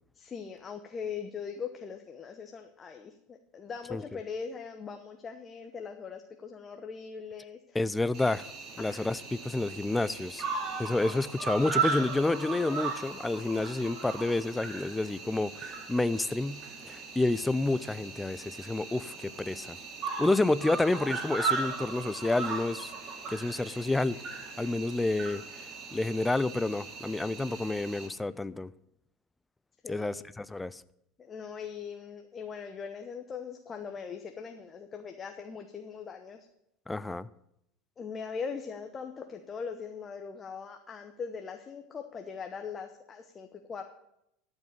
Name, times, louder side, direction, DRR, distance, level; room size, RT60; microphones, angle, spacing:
voice 1, 0.2-7.8 8.8-9.1 29.8-30.3 31.2-36.5 38.0-43.8, left 6 dB, 30° left, 1.1 m, -41 dB
voice 2, 7.7-8.5 8.8-10.5 10.8-19.8 20.2-22.9 23.3-25.4 25.9-28.7 29.9-30.8 36.9-37.3, left 2 dB, 10° left, 0.5 m, -29 dB
Cricket, 8.1-28.1, right 5 dB, 40° right, 3.1 m, -37 dB
13.0 x 5.3 x 8.7 m
hypercardioid pair, 95°, 0 cm